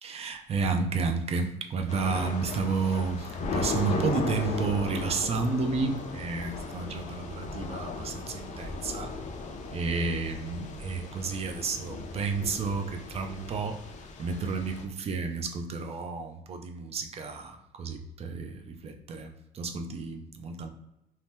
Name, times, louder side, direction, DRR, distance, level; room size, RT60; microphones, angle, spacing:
voice 1, 0.0-9.1 9.7-13.8 14.2-20.7, right 4 dB, 35° right, 5 dB, 0.4 m, -31 dB
Thunder / Rain, 1.9-14.8, left 4 dB, 45° left, 0.5 m, -37 dB
2.7 x 2.2 x 3.3 m, 0.91 s
cardioid pair, 110°, 17 cm